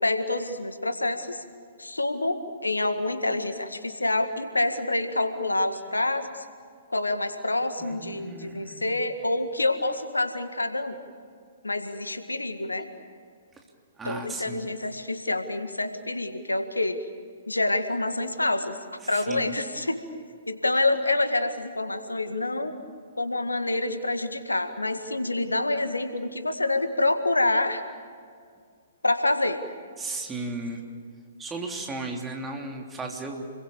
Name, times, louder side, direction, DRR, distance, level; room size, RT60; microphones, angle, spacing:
voice 1, 0.0-1.4 1.8-6.5 6.9-11.0 11.6-12.9 14.0-17.0 17.5-18.8 19.1-20.0 20.5-22.8 23.2-27.8 29.0-29.6, left 2 dB, 85° left, 9 dB, 1.9 m, -27 dB
voice 2, 7.8-8.9 14.0-14.7 19.0-19.5 30.0-30.8 31.4-33.4, right 2 dB, 15° right, 1 dB, 3.1 m, -35 dB
30.0 x 22.0 x 7.2 m, 2.1 s
figure-of-eight pair, 120°, 0 cm